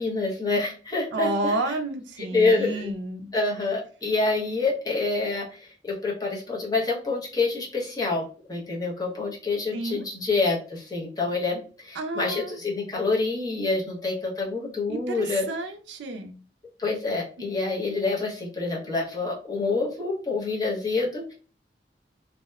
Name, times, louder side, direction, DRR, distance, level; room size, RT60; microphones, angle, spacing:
voice 1, 0.0-1.5 2.3-2.9 3.3-15.5 16.8-21.3, left 3 dB, 20° left, 0.7 m, -27 dB
voice 2, 1.1-3.3 9.7-10.0 12.0-12.6 14.9-16.4 17.4-17.5, right 2 dB, 75° right, 0.4 m, -30 dB
2.7 x 2.1 x 2.2 m
head